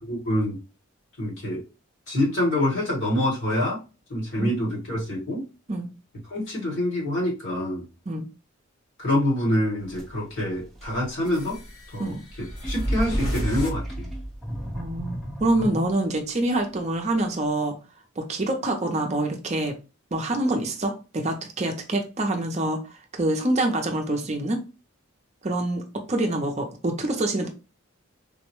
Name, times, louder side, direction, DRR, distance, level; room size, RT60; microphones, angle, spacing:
voice 1, 0.1-0.6 1.2-1.6 2.1-3.8 4.1-5.4 6.3-7.8 9.0-11.6 11.9-14.1, left 1 dB, 60° left, -4 dB, 1.7 m, -26 dB
sound 1, 9.8-16.3, equal, ahead, 0.8 m, -39 dB
sound 2, 11.2-14.7, equal, 80° left, 1.7 m, -31 dB
voice 2, 14.7-17.8 18.2-19.8 20.1-24.6 25.4-27.5, right 2 dB, 30° right, 3 dB, 0.5 m, -26 dB
3.8 x 2.1 x 2.9 m, 0.30 s
head